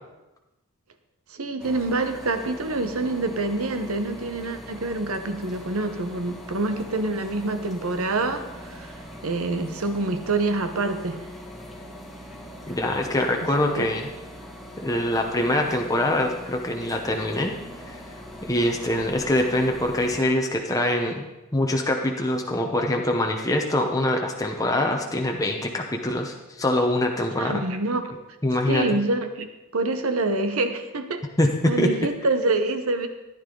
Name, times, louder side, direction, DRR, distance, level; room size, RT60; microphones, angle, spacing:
voice 1, 1.3-11.2 13.8-13.9 27.4-28.1 28.7-29.5 29.7-31.2 31.6-33.1, right 2 dB, 70° right, 8 dB, 1.1 m, -26 dB
sound 1, 1.6-20.2, equal, ahead, 1.7 m, -41 dB
voice 2, 12.7-14.1 14.8-17.5 17.9-18.0 18.5-21.3 21.5-27.6 28.4-29.0 31.4-31.9, left 1 dB, 15° left, 2 dB, 0.8 m, -24 dB
14.0 x 10.0 x 3.9 m, 1.0 s
head